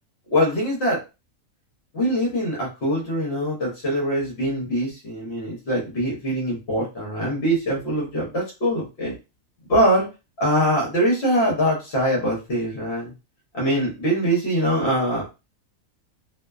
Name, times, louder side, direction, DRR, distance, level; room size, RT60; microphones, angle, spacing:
voice 1, 0.3-1.0 1.9-9.1 9.7-10.1 10.4-13.1 13.5-15.3, equal, 55° left, -3 dB, 1.1 m, -23 dB
2.6 x 2.1 x 2.2 m, 0.27 s
omnidirectional pair, 1.4 m